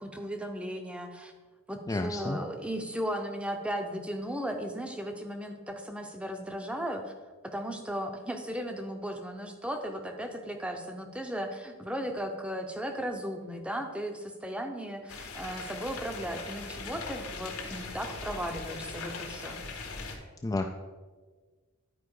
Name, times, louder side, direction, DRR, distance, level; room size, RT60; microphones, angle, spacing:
voice 1, 0.0-1.3 1.7-7.1 7.4-19.6, equal, 5° right, 5 dB, 0.7 m, -36 dB
voice 2, 1.9-2.4 20.4-20.7, left 2 dB, 15° left, 3 dB, 0.3 m, -31 dB
sound 1, 15.1-20.2, left 4 dB, 80° left, 1.4 m, -40 dB
11.0 x 4.7 x 4.8 m, 1.4 s
head